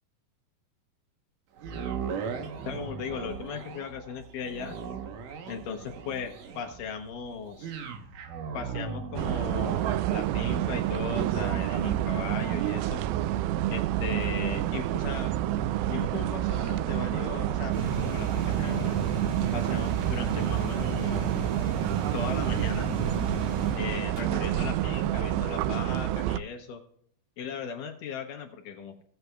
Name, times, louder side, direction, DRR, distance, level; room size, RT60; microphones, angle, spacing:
sound 1, 1.6-15.8 16.3-16.4, right 6 dB, 70° right, 2.5 m, -40 dB
voice 1, 2.7-4.8 5.5-7.7 8.5-13.0 13.7-15.3 15.9-19.0 19.5-21.3 22.1-22.9 23.7-26.8 27.4-28.9, left 6 dB, 75° left, 4 dB, 2.3 m, -37 dB
sound 2, 9.2-26.4, right 13 dB, 90° right, 2.4 m, -28 dB
sound 3, 17.7-24.2, right 1 dB, 45° right, 3.1 m, -35 dB
17.0 x 8.0 x 2.3 m, 0.67 s
omnidirectional pair, 4.2 m